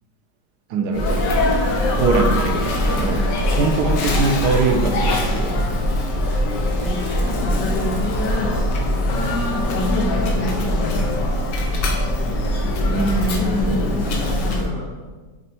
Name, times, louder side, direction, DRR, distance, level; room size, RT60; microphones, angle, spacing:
voice 1, 0.7-1.3 1.9-5.8 12.9-14.0, right 3 dB, 70° right, 5 dB, 1.1 m, -23 dB
Sneeze, 0.9-14.7, left 1 dB, 90° left, 1.5 m, -21 dB
voice 2, 7.4-11.7 14.0-14.9, equal, 45° left, -5 dB, 0.9 m, -35 dB
5.3 x 4.2 x 4.3 m, 1.3 s
omnidirectional pair, 1.8 m